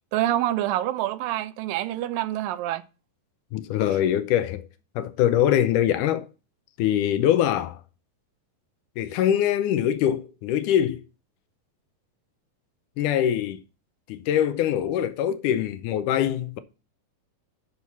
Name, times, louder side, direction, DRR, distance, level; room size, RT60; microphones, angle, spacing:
voice 1, 0.1-2.8, right 13 dB, 80° right, 2.3 m, -26 dB
voice 2, 3.5-4.7 5.0-6.3 6.8-7.8 9.0-11.0 13.0-13.6 14.1-16.6, left 10 dB, 75° left, 2.0 m, -23 dB
6.4 x 6.0 x 6.9 m
omnidirectional pair, 4.0 m